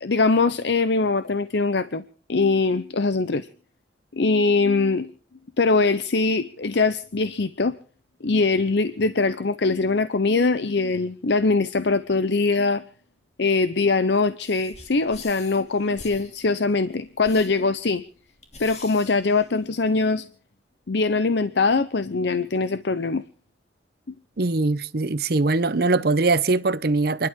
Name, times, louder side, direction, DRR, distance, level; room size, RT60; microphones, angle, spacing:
voice 1, 0.0-2.0 2.3-3.5 4.1-5.1 5.6-7.7 8.2-12.8 13.4-18.0 18.6-20.2 20.9-23.2, left 3 dB, 70° left, 0.7 m, -22 dB
sound 1, 14.4-20.0, left 3 dB, 35° left, 2.9 m, -46 dB
voice 2, 24.4-27.3, right 3 dB, 55° right, 0.8 m, -22 dB
29.5 x 11.5 x 3.7 m
head